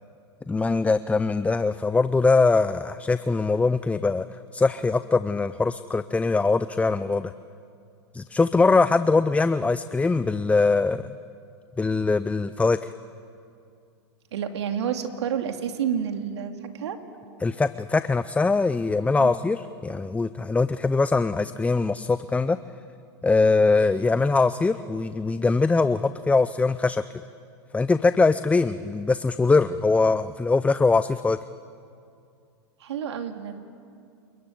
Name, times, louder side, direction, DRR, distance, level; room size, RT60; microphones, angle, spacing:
voice 1, 0.5-7.3 8.1-11.1 11.8-12.9 17.4-22.6 23.2-27.0 27.7-31.4, left 3 dB, 10° left, 13 dB, 0.6 m, -22 dB
voice 2, 14.3-17.0 19.2-19.4 32.8-33.6, right 8 dB, 75° right, 6 dB, 2.6 m, -29 dB
28.5 x 22.5 x 9.2 m, 2.4 s
hypercardioid pair, 105°, 14 cm